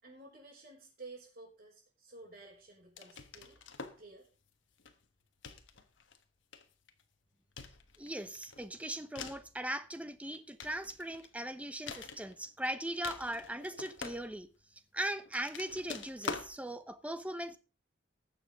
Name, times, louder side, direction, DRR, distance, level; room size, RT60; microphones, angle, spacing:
voice 1, 0.0-3.6 4.0-4.3, right 3 dB, 55° right, 4.4 m, -53 dB
sound 1, 3.0-4.1 4.8-5.0 5.4-6.2 6.5-7.0 7.6-9.5 10.2-11.4 11.9-12.7 12.9-14.6 15.3-16.5, left 5 dB, 80° left, 1.3 m, -45 dB
voice 2, 8.0-14.5 14.9-17.6, right 1 dB, 5° right, 0.8 m, -39 dB
20.0 x 6.9 x 3.7 m
head